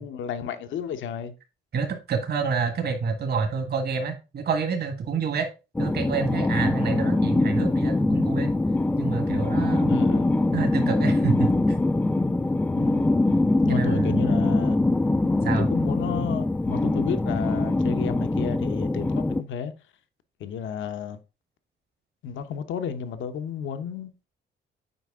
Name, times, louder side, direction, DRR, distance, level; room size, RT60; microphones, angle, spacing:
voice 1, 0.0-1.3 9.9-10.3 12.8-13.1 13.6-14.8 15.6-19.7 20.4-21.2 22.2-24.1, left 7 dB, 75° left, 0.8 m, -32 dB
voice 2, 1.7-5.5 5.8-8.5 9.0-10.1 10.5-11.8 13.7-14.2 15.4-15.7, right 5 dB, 55° right, 1.5 m, -28 dB
sound 1, 5.8-19.4, left 2 dB, 10° left, 0.3 m, -23 dB
8.0 x 4.7 x 3.5 m
cardioid pair, 90°, 20 cm